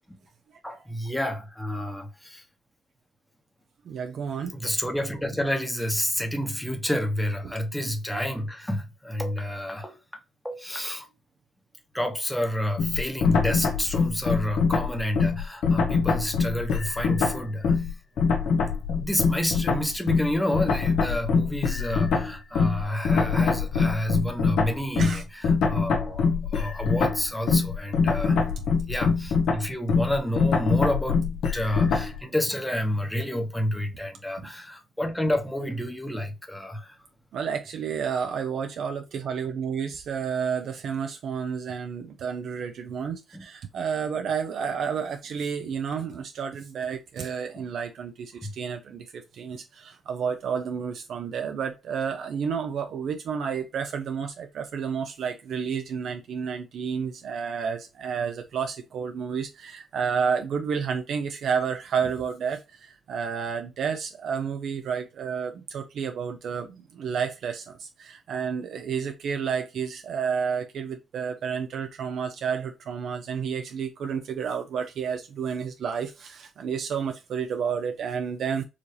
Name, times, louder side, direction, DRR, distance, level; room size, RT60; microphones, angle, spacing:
voice 1, 0.6-2.4 4.5-10.0 10.4-11.1 11.9-17.7 19.0-28.4 28.9-37.0 43.3-43.4 48.4-48.5, equal, 5° left, 0.9 m, -29 dB
voice 2, 3.9-4.5 7.4-7.5 17.1-17.2 23.2-23.3 25.0-25.2 34.4-34.5 37.3-78.6, right 6 dB, 65° right, 0.5 m, -30 dB
sound 1, 12.8-17.9 18.2-32.2, left 5 dB, 75° left, 0.8 m, -24 dB
4.8 x 2.7 x 3.1 m
cardioid pair, 90°, 0 cm